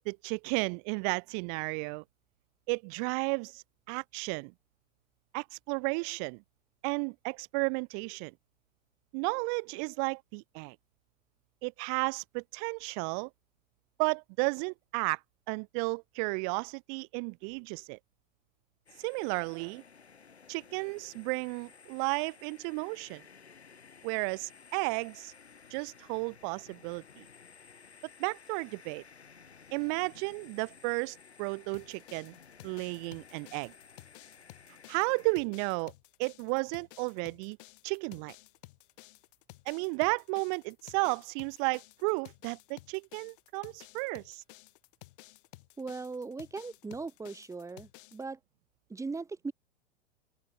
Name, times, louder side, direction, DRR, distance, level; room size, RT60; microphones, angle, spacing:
voice 1, 0.0-2.0 2.7-4.5 5.3-6.4 6.8-8.3 9.1-10.8 11.6-13.3 14.0-15.2 15.5-18.0 19.0-19.8 20.5-23.2 24.0-25.3 25.7-27.2 28.2-29.0 29.7-32.4 32.6-33.7 34.9-35.9 36.2-37.6 37.8-38.4 39.7-44.4, right 40 dB or more, 35° right, 0.5 m, -33 dB
sound 1, 18.9-35.4, left 6 dB, 85° left, 6.3 m, -56 dB
sound 2, 31.7-48.2, left 20 dB, 55° left, 4.1 m, -54 dB
voice 2, 45.8-48.4 48.9-49.5, right 4 dB, 10° right, 1.8 m, -39 dB
open air
hypercardioid pair, 100°, 32 cm